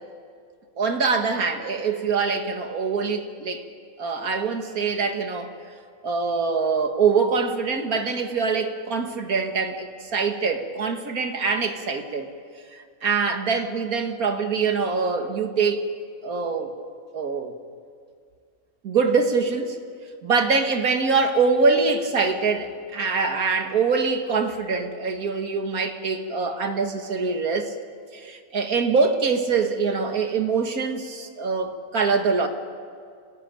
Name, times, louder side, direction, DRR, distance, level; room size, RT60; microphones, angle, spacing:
voice 1, 0.8-3.6 4.0-5.5 6.0-12.3 12.7-15.8 16.2-16.9 17.1-17.5 18.8-19.8 20.2-27.7 28.1-32.5, right 4 dB, 75° right, 6 dB, 2.2 m, -24 dB
29.0 x 16.0 x 9.0 m, 2.2 s
omnidirectional pair, 1.5 m